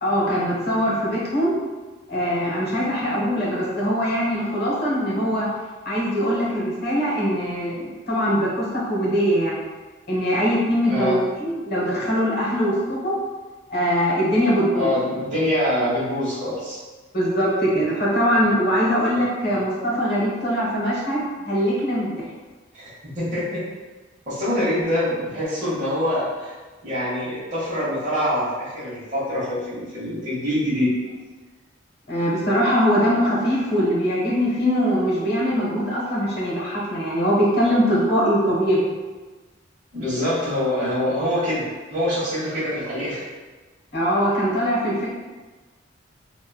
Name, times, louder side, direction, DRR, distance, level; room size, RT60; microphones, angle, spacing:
voice 1, 0.0-1.5 2.1-5.5 5.8-9.6 10.1-13.2 13.7-14.9 17.1-22.3 32.1-38.9 43.9-45.1, equal, 50° left, -6 dB, 0.9 m, -22 dB
voice 2, 10.9-11.2 14.7-16.8 22.7-23.6 24.3-26.6 26.8-30.9 39.9-43.3, left 1 dB, 40° right, -9 dB, 1.0 m, -25 dB
3.0 x 2.3 x 2.3 m, 1.3 s
head